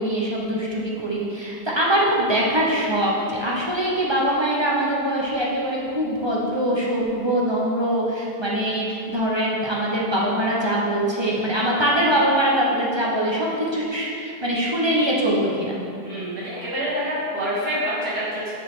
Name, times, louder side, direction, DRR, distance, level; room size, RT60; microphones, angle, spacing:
voice 1, 0.0-15.8, right 1 dB, 25° right, -4 dB, 0.5 m, -23 dB
voice 2, 16.0-18.5, equal, 75° right, -8 dB, 2.6 m, -27 dB
7.1 x 6.0 x 3.6 m, 2.4 s
omnidirectional pair, 1.7 m